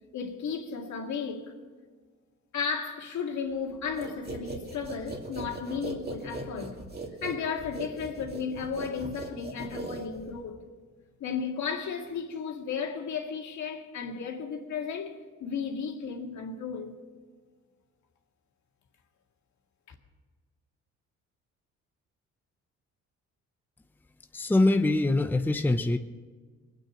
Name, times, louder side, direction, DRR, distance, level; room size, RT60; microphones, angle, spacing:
voice 1, 0.1-1.5 2.5-6.8 7.2-10.6 11.2-17.0, left 6 dB, 70° left, 2.1 m, -34 dB
sound 1, 4.0-10.5, right 2 dB, 30° right, 2.5 m, -39 dB
voice 2, 24.3-26.0, left 2 dB, 5° left, 0.7 m, -23 dB
21.0 x 9.3 x 6.2 m
cardioid pair, 90°, 30 cm